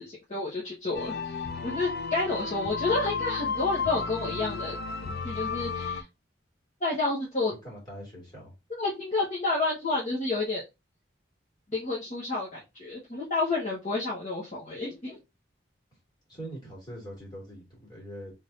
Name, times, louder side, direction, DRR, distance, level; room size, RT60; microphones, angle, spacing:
voice 1, 0.0-4.8 5.0-6.0 6.8-7.5 8.8-10.6 11.7-15.2, left 3 dB, 40° left, 1.2 m, -30 dB
sound 1, 0.9-6.0, left 5 dB, 55° left, 0.5 m, -33 dB
voice 2, 7.6-8.5 16.3-18.3, right 1 dB, 25° left, 2.5 m, -42 dB
3.6 x 3.6 x 2.6 m
head